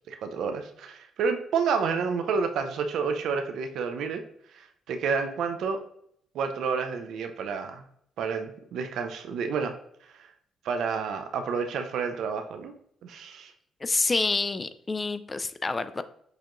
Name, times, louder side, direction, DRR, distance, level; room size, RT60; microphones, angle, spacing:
voice 1, 0.1-4.2 4.5-5.8 6.3-7.8 8.2-9.7 10.6-12.7 13.0-13.5, right 5 dB, 75° right, 6 dB, 0.5 m, -29 dB
voice 2, 13.8-16.0, left 3 dB, 25° left, 12 dB, 0.3 m, -28 dB
6.5 x 2.9 x 2.5 m, 0.69 s
cardioid pair, 90°, 0 cm